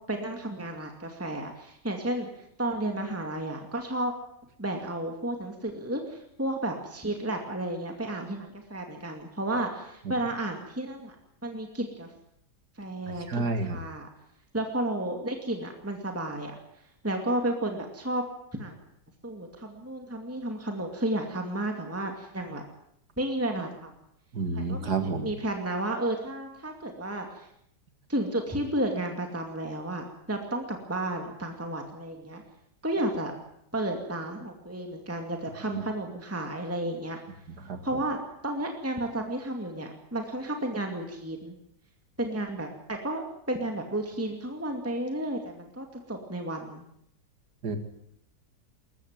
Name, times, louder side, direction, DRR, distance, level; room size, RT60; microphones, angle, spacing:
voice 1, 0.1-4.1 4.6-11.1 11.4-12.1 12.8-13.4 13.7-14.1 14.5-16.6 17.0-18.2 18.5-18.7 19.2-22.6 23.2-23.9 24.7-24.9 25.2-27.5 28.1-32.4 32.8-33.3 33.7-37.2 37.8-41.5 42.2-46.8, right 1 dB, 10° right, 3 dB, 2.3 m, -32 dB
voice 2, 13.1-13.8 24.3-25.3 35.7-35.8 37.6-37.8 47.6-47.8, right 4 dB, 70° right, 8 dB, 2.6 m, -30 dB
21.0 x 14.0 x 9.1 m, 0.73 s
omnidirectional pair, 1.8 m